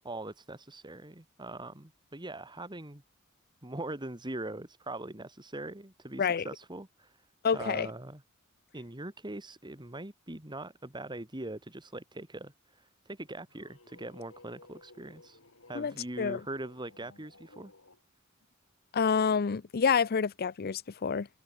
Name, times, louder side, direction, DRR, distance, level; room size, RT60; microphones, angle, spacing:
voice 1, 0.0-3.0 3.6-7.2 7.5-8.2 8.7-15.4 15.7-17.7, right 2 dB, 20° right, 2.3 m, -42 dB
voice 2, 7.4-7.9 15.7-16.4 18.9-21.3, left 6 dB, 50° left, 0.5 m, -28 dB
sound 1, 13.1-18.0, left 2 dB, 75° left, 4.8 m, -58 dB
head